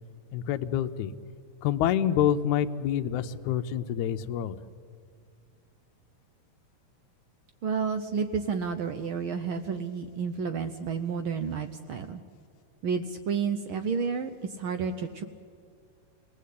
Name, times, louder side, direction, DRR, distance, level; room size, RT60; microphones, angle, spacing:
voice 1, 0.3-1.1 1.6-4.6, left 10 dB, 80° left, 8 dB, 2.2 m, -27 dB
voice 2, 7.6-12.2 12.8-14.3 14.6-15.2, right 6 dB, 85° right, 9 dB, 1.1 m, -30 dB
29.0 x 19.5 x 8.4 m, 2.2 s
omnidirectional pair, 3.4 m